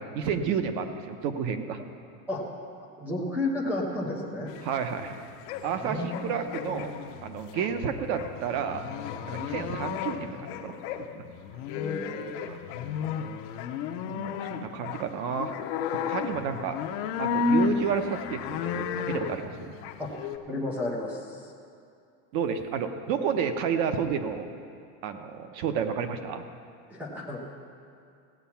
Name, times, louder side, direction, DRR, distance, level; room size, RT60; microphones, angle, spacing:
voice 1, 0.0-1.8 4.6-5.2 5.6-8.8 9.3-10.7 11.1-11.2 12.5-12.6 14.0-15.5 15.9-16.8 17.2-19.7 22.3-24.5 25.0-26.4, right 7 dB, 45° right, 7 dB, 0.9 m, -31 dB
voice 2, 3.0-4.5 5.8-6.2 11.7-12.2 20.0-20.1 20.5-21.5 26.9-27.4, left 2 dB, 5° right, -3 dB, 0.3 m, -32 dB
sound 1, 4.5-20.4, left 6 dB, 45° left, 0.8 m, -33 dB
16.5 x 8.2 x 5.7 m, 2.4 s
supercardioid pair, 165°, 49 cm